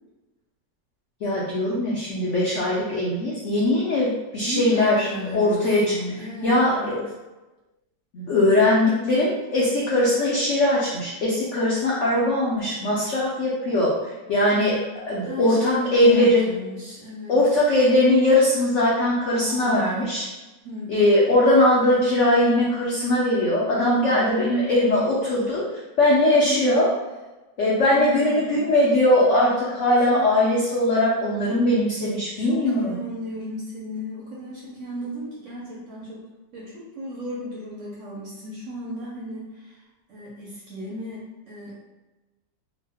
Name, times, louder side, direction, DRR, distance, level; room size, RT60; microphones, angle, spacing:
voice 1, 1.2-5.9 6.4-7.0 8.1-14.8 15.1-16.5 17.3-20.3 20.9-26.9 27.6-33.0, left 1 dB, 75° left, -5 dB, 0.6 m, -20 dB
voice 2, 4.4-7.0 15.2-17.3 19.4-20.2 20.6-21.1 23.8-24.4 26.4-26.8 27.9-28.6 30.1-30.3 32.4-36.3 36.5-39.8 40.1-41.7, equal, 65° right, -6 dB, 0.8 m, -35 dB
2.9 x 2.0 x 3.3 m, 1.1 s
omnidirectional pair, 1.9 m